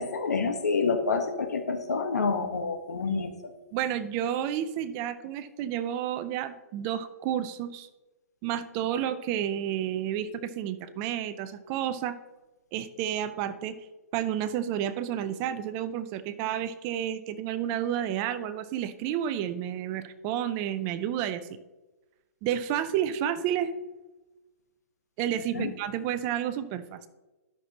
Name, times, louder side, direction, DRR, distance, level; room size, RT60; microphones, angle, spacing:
voice 1, 0.0-3.5 25.5-25.7, left 4 dB, 80° left, 6 dB, 1.3 m, -28 dB
voice 2, 3.7-7.9 8.4-12.2 12.7-13.8 14.1-21.4 22.4-23.7 25.2-27.1, right 10 dB, 30° right, 13 dB, 0.5 m, -30 dB
12.0 x 6.0 x 2.9 m, 1.1 s
hypercardioid pair, 140°, 9 cm